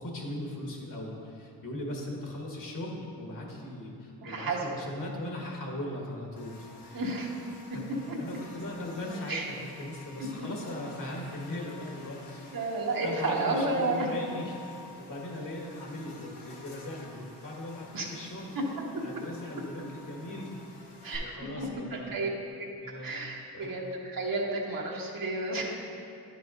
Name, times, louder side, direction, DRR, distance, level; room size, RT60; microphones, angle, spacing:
voice 1, 0.0-7.1 7.7-7.8 8.2-12.6 12.9-18.6 19.0-20.5 20.8-20.9 21.2-22.1 22.8-23.2 23.5-23.8, left 1 dB, 50° left, -1 dB, 1.5 m, -39 dB
voice 2, 4.2-4.7 6.9-7.3 9.3-9.5 10.4-10.5 12.5-14.1 17.9-18.1 18.5-18.6 18.9-19.0 21.0-22.3 22.6-22.7 23.0-25.7, right 2 dB, 55° right, -2 dB, 1.3 m, -31 dB
Buzz, 6.4-21.2, left 3 dB, 75° left, 1.1 m, -51 dB
9.8 x 5.7 x 2.5 m, 2.6 s
cardioid pair, 55°, 40 cm